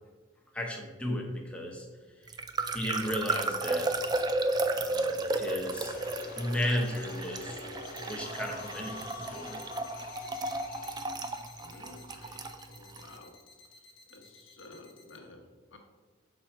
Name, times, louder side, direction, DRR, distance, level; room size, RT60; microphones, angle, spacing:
voice 1, 0.5-1.9 2.2-2.4 2.7-3.9 4.7-6.0 6.4-7.6 8.1-9.6, left 1 dB, 5° left, 0 dB, 0.9 m, -34 dB
sound 1, 2.3-13.1, right 2 dB, 20° right, 0.3 m, -33 dB
sound 2, 4.8-5.3 5.8-6.3 6.8-7.3 7.8-15.2, left 7 dB, 90° left, 1.0 m, -54 dB
sound 3, 5.4-13.1, left 4 dB, 50° left, 0.6 m, -45 dB
voice 2, 11.6-13.4 14.1-15.8, left 2 dB, 65° left, 2 dB, 1.1 m, -52 dB
6.3 x 4.4 x 4.4 m, 1.4 s
head